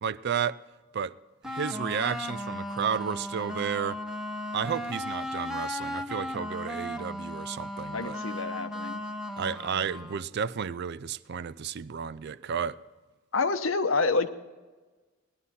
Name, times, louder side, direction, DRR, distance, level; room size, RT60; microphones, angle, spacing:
voice 1, 0.0-0.6 0.9-1.2 1.4-4.0 4.5-8.2 9.4-12.8, right 7 dB, 55° right, 0.4 m, -32 dB
sound 1, 1.4-10.2, left 1 dB, 5° right, 0.8 m, -36 dB
voice 2, 7.9-9.0 13.3-14.3, left 4 dB, 70° left, 0.8 m, -27 dB
18.5 x 11.0 x 4.2 m
head